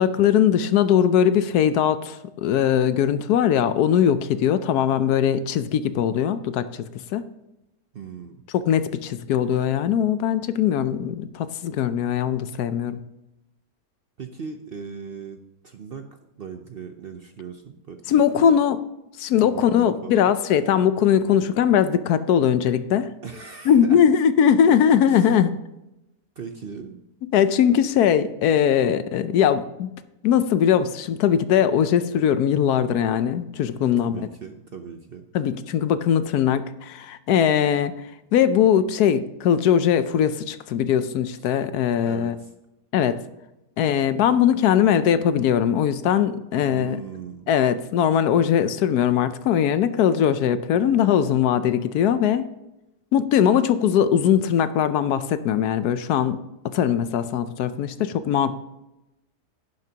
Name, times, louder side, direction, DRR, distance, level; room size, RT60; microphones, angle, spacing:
voice 1, 0.0-6.8 7.1-7.2 8.5-13.0 18.1-18.8 19.2-23.1 23.7-25.5 27.3-29.9 30.2-34.2 35.3-37.9 38.3-42.4 42.9-43.2 43.8-47.0 47.5-52.5 53.1-56.4 56.6-58.5, left 9 dB, 80° left, 13 dB, 1.2 m, -20 dB
voice 2, 7.9-8.4 14.2-16.1 16.4-18.6 19.4-20.3 23.2-24.0 25.1-25.5 26.4-27.0 33.8-35.2 41.4-41.5 42.0-42.5 46.6-47.5, right 6 dB, 50° right, 6 dB, 0.7 m, -38 dB
11.0 x 10.5 x 2.9 m, 0.93 s
omnidirectional pair, 1.7 m